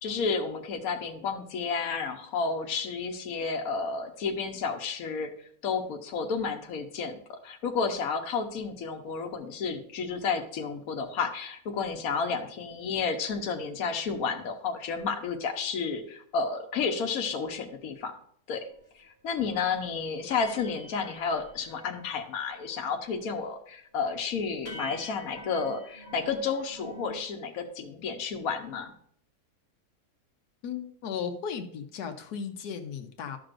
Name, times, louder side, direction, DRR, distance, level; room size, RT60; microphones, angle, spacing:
voice 1, 0.0-5.3 5.6-18.1 18.5-18.6 18.9-28.9, left 5 dB, 70° left, 4 dB, 1.3 m, -31 dB
sound 1, 18.8-18.9 19.3-19.5 19.8-19.9 20.3-22.1 22.4-22.9 23.1-23.6 24.0-24.1 24.7-27.2, left 1 dB, 45° left, 1.3 m, -46 dB
voice 2, 30.6-33.4, left 7 dB, 85° left, 4 dB, 1.3 m, -36 dB
12.5 x 6.2 x 2.5 m, 0.63 s
omnidirectional pair, 1.6 m